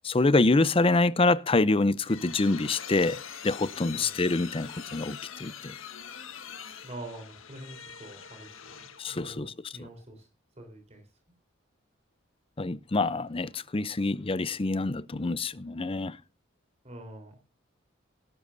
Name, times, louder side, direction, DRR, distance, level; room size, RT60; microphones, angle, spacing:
voice 1, 0.0-5.7 9.0-9.5 9.8-9.9 12.6-16.2, left 3 dB, 25° left, 0.6 m, -26 dB
sound 1, 1.6-9.2, left 8 dB, 80° left, 1.5 m, -43 dB
voice 2, 6.8-10.3 10.6-11.0 16.8-17.4, right 1 dB, 35° right, 4.0 m, -45 dB
18.0 x 12.0 x 2.7 m
head